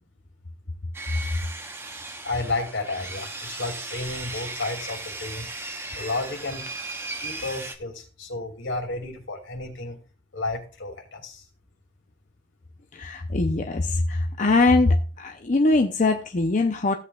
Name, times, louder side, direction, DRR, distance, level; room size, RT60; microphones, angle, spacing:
Sawing, 0.9-7.8, right 2 dB, 15° right, 1.0 m, -36 dB
voice 1, 2.2-5.5 5.9-6.6 7.2-10.0 10.3-11.4, left 2 dB, 75° left, 2 dB, 2.7 m, -32 dB
voice 2, 12.9-16.9, left 2 dB, 40° left, 4 dB, 0.7 m, -22 dB
16.0 x 8.2 x 2.4 m, 0.35 s
head